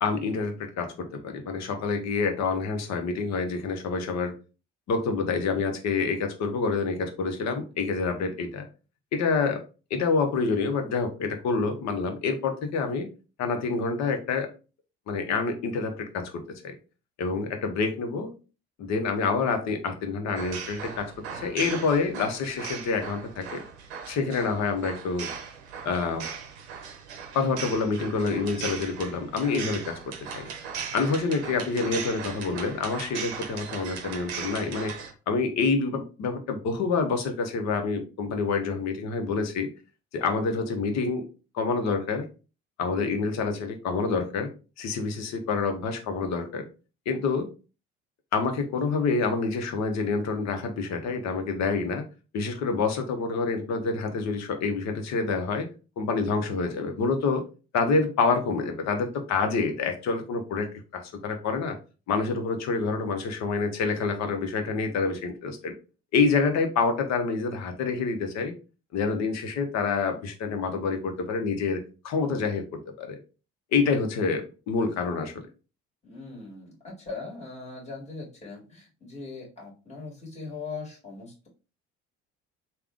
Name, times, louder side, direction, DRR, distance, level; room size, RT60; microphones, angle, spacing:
voice 1, 0.0-4.3 4.9-8.7 9.1-9.6 9.9-13.1 13.4-14.5 15.1-16.3 16.6-16.7 17.2-18.3 18.8-23.6 24.1-25.3 25.8-26.3 27.3-30.5 30.9-35.0 35.3-39.7 40.1-41.2 41.5-42.3 42.8-44.5 44.8-46.7 47.1-47.5 48.3-52.0 52.3-55.7 56.0-57.4 57.7-61.8 62.1-65.7 66.1-68.5 68.9-72.6 73.0-73.2 73.7-75.4, left 4 dB, 55° left, 6 dB, 0.9 m, -27 dB
sound 1, 20.3-35.1, right 6 dB, 85° right, 0.7 m, -38 dB
voice 2, 76.0-81.5, left 4 dB, 20° left, -2 dB, 1.6 m, -40 dB
3.5 x 2.3 x 3.5 m, 0.33 s
hypercardioid pair, 60°, 32 cm